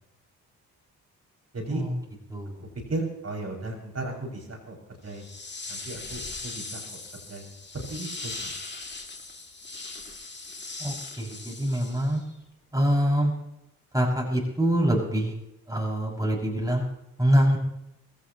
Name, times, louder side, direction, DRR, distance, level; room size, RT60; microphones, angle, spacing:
voice 1, 2.9-5.3 5.7-7.0 7.3-8.5, right 2 dB, 35° right, 0 dB, 6.8 m, -35 dB
sound 1, 5.1-12.3, left 3 dB, 25° left, 2.8 m, -39 dB
voice 2, 10.8-12.2 12.7-13.3 13.9-15.3 15.7-16.8 17.2-17.6, equal, 10° right, -2 dB, 6.7 m, -24 dB
21.0 x 17.5 x 3.1 m, 0.84 s
hypercardioid pair, 40°, 41 cm